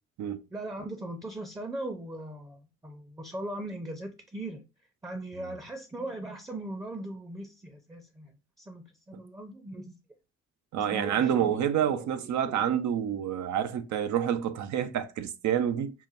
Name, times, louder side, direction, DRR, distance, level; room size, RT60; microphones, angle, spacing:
voice 1, 0.5-4.6 5.0-8.3 8.6-9.9 10.8-12.0 12.5-12.6, right 1 dB, 10° right, 0.6 m, -39 dB
voice 2, 10.7-15.9, right 9 dB, 70° right, 0.6 m, -28 dB
5.6 x 2.2 x 2.4 m
cardioid pair, 90°, 30 cm